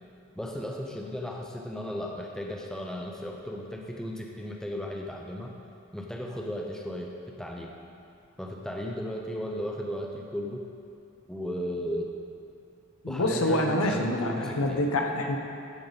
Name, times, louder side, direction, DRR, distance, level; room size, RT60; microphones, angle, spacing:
voice 1, 0.4-5.6 5.9-7.7 8.4-10.6 11.3-12.1 13.1-14.8, equal, 5° left, 0 dB, 0.5 m, -35 dB
voice 2, 13.0-15.4, left 1 dB, 85° left, 3 dB, 0.8 m, -26 dB
14.0 x 5.2 x 3.9 m, 2.6 s
head